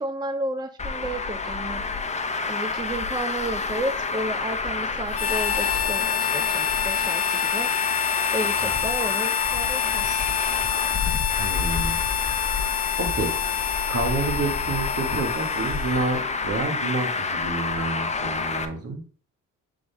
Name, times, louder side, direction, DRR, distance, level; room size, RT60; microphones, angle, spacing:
voice 1, 0.0-1.8 2.5-7.7 8.3-10.3, right 1 dB, 15° right, 9 dB, 0.4 m, -32 dB
Traffic noise roadway noise, 0.8-18.7, left 4 dB, 25° left, 0.8 m, -28 dB
Harmonica, 5.1-16.2, left 10 dB, 55° left, 0.5 m, -27 dB
voice 2, 11.4-12.0 13.0-13.3 13.9-19.0, right 3 dB, 55° right, 4 dB, 1.8 m, -29 dB
7.5 x 4.0 x 3.4 m, 0.41 s
cardioid pair, 90°, 30 cm